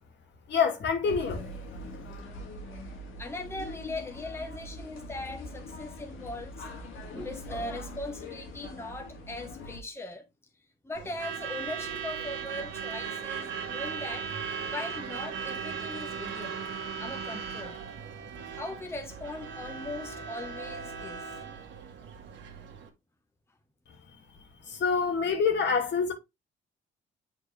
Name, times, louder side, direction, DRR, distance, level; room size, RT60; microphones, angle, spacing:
voice 1, 0.5-1.4 24.6-26.1, left 5 dB, 65° left, 2.3 m, -26 dB
sound 1, 1.0-9.8, left 1 dB, 80° left, 2.2 m, -42 dB
voice 2, 3.2-6.7 7.1-10.3 10.8-14.3 14.7-16.6 17.0-17.8 18.5-21.3, left 2 dB, 10° left, 1.2 m, -39 dB
Truck / Alarm, 10.9-22.9, right 6 dB, 70° right, 1.6 m, -37 dB
7.8 x 4.5 x 3.3 m
cardioid pair, 90°, 20 cm